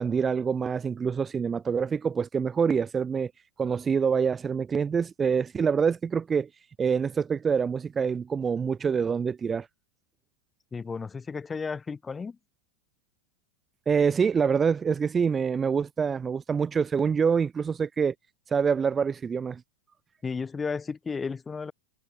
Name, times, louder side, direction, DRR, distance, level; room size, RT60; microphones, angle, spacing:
voice 1, 0.0-3.3 3.6-6.5 6.8-9.7 13.9-18.1 18.5-19.6, right 6 dB, 20° right, 0.4 m, -26 dB
voice 2, 10.7-12.4 20.2-21.7, left 5 dB, 15° left, 0.8 m, -33 dB
figure-of-eight pair, 90°, 0 cm